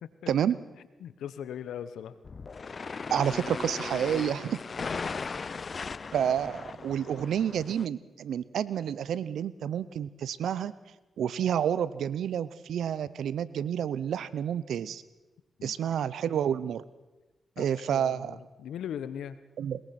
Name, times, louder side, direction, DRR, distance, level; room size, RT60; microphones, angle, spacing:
voice 1, 1.0-2.2 4.8-5.1 15.6-15.7 17.6-19.4, left 9 dB, 85° left, 14 dB, 1.1 m, -40 dB
sound 1, 2.2-7.9, left 4 dB, 50° left, 0.6 m, -37 dB
voice 2, 3.1-4.6 6.1-10.7 11.2-15.0 15.6-16.8 17.6-18.4 19.6-19.8, right 9 dB, 80° right, 18 dB, 0.8 m, -29 dB
21.5 x 21.0 x 6.0 m, 1.1 s
supercardioid pair, 55°, 0 cm